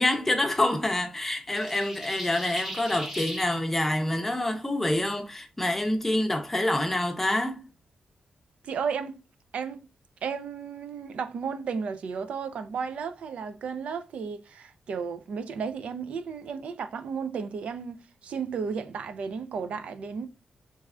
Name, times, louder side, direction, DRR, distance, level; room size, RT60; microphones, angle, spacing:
voice 1, 0.0-7.7, left 1 dB, 10° left, 0.6 m, -27 dB
sound 1, 1.5-3.5, equal, 25° right, 1.0 m, -38 dB
voice 2, 8.6-9.2 9.5-9.9 10.2-20.3, right 6 dB, 75° right, 0.4 m, -33 dB
3.3 x 3.2 x 2.4 m
wide cardioid pair, 140°, 2 cm